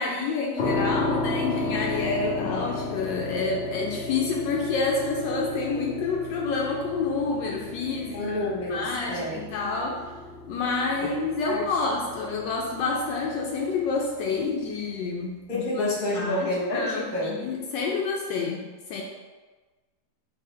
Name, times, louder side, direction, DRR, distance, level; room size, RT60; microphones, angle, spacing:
voice 1, 0.0-8.4 8.7-10.0 10.5-18.6 18.9-19.0, left 4 dB, 75° left, -1 dB, 1.2 m, -28 dB
sound 1, 0.6-15.4, left 2 dB, 60° left, 0.7 m, -34 dB
voice 2, 8.1-9.4 11.0-11.6 15.5-17.4, left 1 dB, 35° left, -4 dB, 1.0 m, -29 dB
3.8 x 3.1 x 4.2 m, 1.3 s
omnidirectional pair, 2.0 m